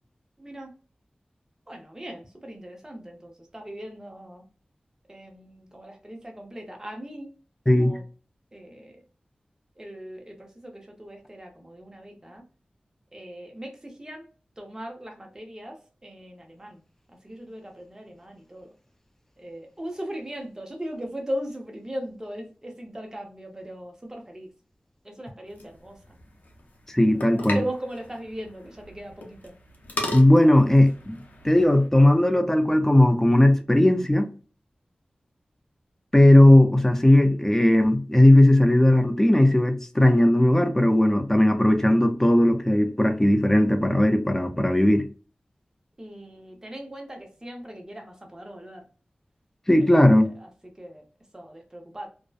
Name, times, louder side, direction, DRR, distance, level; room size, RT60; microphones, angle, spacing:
voice 1, 0.4-0.7 1.7-4.4 5.1-7.3 7.7-8.0 8.5-9.0 9.8-12.4 13.1-14.2 14.6-16.8 17.2-18.7 19.4-24.5 25.0-26.0 27.1-29.5 46.0-48.8 49.8-50.5 50.8-51.0 51.3-52.1, equal, 20° right, 0.7 m, -38 dB
sound 1, 25.5-31.9, left 2 dB, 70° left, 0.6 m, -38 dB
voice 2, 26.9-27.6 30.1-31.2 31.4-34.3 36.1-45.0 49.7-50.3, left 1 dB, 10° left, 0.4 m, -17 dB
2.6 x 2.1 x 2.3 m
wide cardioid pair, 90°, 3 cm